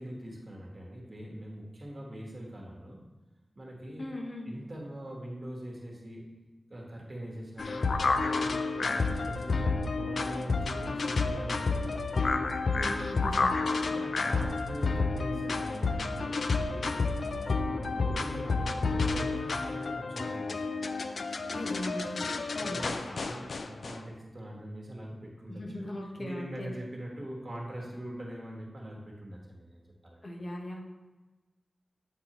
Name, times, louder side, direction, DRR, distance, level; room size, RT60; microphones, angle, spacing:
voice 1, 0.0-3.0 3.5-4.1 4.4-6.2 6.7-12.2 13.8-21.0 21.4-21.5 22.6-25.6 26.2-30.2, right 1 dB, 40° right, -3 dB, 1.3 m, -42 dB
voice 2, 4.0-4.5 12.8-13.6 21.5-22.9 25.5-26.7 30.2-30.8, left 1 dB, 50° left, 0 dB, 1.0 m, -39 dB
sound 1, 7.6-24.0, left 3 dB, 75° left, 0.3 m, -30 dB
8.6 x 3.9 x 3.0 m, 1.2 s
wide cardioid pair, 60°, 0 cm